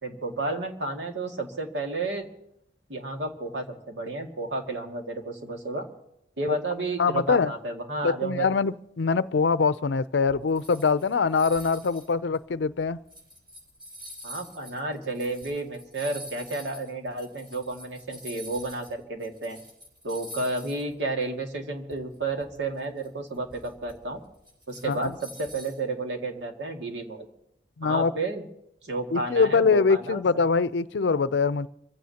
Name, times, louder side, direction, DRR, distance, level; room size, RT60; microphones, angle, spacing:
voice 1, 0.0-2.3 2.9-5.9 6.4-8.5 14.2-19.6 20.0-24.2 24.7-27.3 27.8-28.5 28.8-30.2, right 2 dB, 80° right, 2.1 m, -32 dB
voice 2, 7.0-7.5 8.0-13.0 24.8-25.1 27.8-28.1 29.1-31.7, left 5 dB, 80° left, 0.5 m, -23 dB
sound 1, 10.3-18.9 19.2-20.9 21.2-21.3 21.9-25.8, equal, 25° right, 5.0 m, -46 dB
26.0 x 15.5 x 2.9 m
head